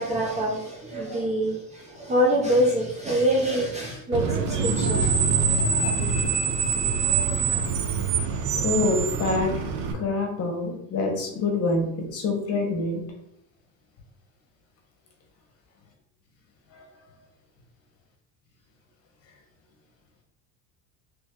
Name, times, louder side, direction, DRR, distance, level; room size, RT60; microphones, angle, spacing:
voice 1, 0.0-5.2, right 1 dB, 20° right, -2 dB, 0.4 m, -25 dB
Screech, 4.1-9.9, right 5 dB, 65° right, 0.7 m, -24 dB
voice 2, 8.6-9.5 9.9-13.0 16.7-16.8, left 3 dB, 40° left, 2 dB, 1.0 m, -26 dB
3.1 x 2.6 x 3.6 m, 0.76 s
cardioid pair, 145°, 37 cm